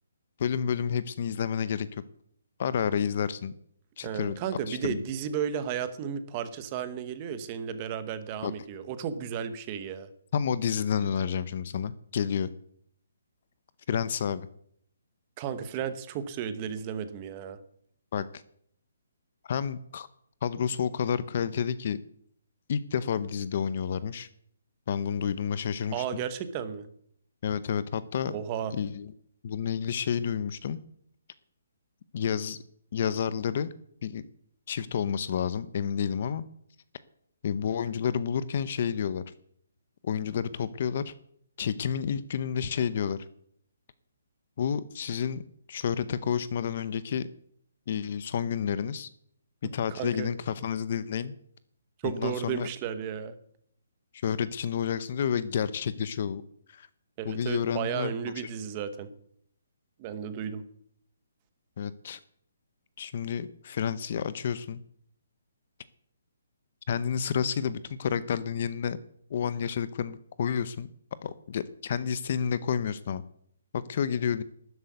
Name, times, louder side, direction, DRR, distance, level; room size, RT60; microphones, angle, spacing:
voice 1, 0.4-2.0 2.6-3.5 4.0-4.4 4.7-5.0 8.4-8.5 10.3-12.5 13.9-14.5 18.1-18.4 19.4-20.1 20.4-22.0 22.7-24.3 24.9-26.2 27.4-28.4 28.7-29.1 29.4-30.8 32.1-32.6 32.9-33.7 34.0-34.2 34.7-36.4 37.4-39.2 40.0-41.1 41.6-43.2 44.6-45.4 45.7-47.3 47.9-49.1 49.7-51.3 52.0-52.7 54.1-56.4 56.7-56.9 57.2-58.5 61.8-62.2 63.0-64.8 66.9-69.0 69.3-70.9 71.2-73.2 73.7-74.4, left 7 dB, 35° left, 16 dB, 0.7 m, -30 dB
voice 2, 4.0-10.1 15.4-17.6 25.9-26.9 28.3-28.7 49.9-50.3 52.0-53.3 57.2-59.1 60.0-60.6, right 8 dB, 20° right, 12 dB, 1.0 m, -33 dB
12.5 x 7.8 x 9.3 m, 0.67 s
hypercardioid pair, 175°, 0 cm